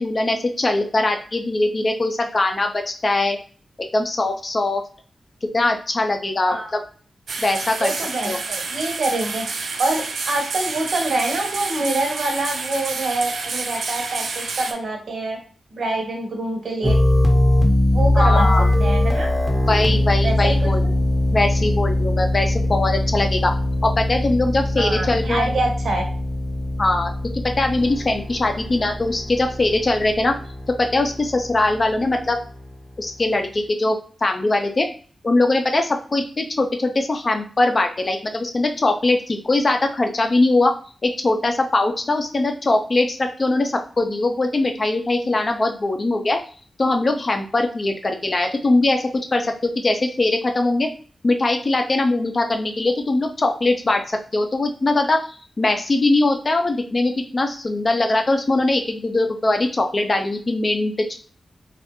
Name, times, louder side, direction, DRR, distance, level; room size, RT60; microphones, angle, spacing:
voice 1, 0.0-3.4 3.9-4.8 5.5-6.8 7.4-7.9 8.2-8.4 18.2-18.7 19.7-20.8 21.3-23.5 23.8-25.5 26.8-27.1 27.6-30.3 30.8-32.4 33.0-34.9 35.2-40.7 41.0-46.4 46.8-50.9 51.2-55.2 55.6-61.2, left 2 dB, 30° left, 5 dB, 0.5 m, -21 dB
sound 1, 7.3-14.7, right 4 dB, 90° right, 0.4 m, -29 dB
voice 2, 7.8-9.4 9.8-15.4 15.7-17.0 17.9-18.5 18.8-19.3 20.2-20.7 24.8-26.0, right 2 dB, 70° right, 2 dB, 0.9 m, -25 dB
sound 2, 16.8-32.7, left 1 dB, 10° right, 0.7 m, -21 dB
3.2 x 2.4 x 2.9 m, 0.41 s
wide cardioid pair, 165°, 0 cm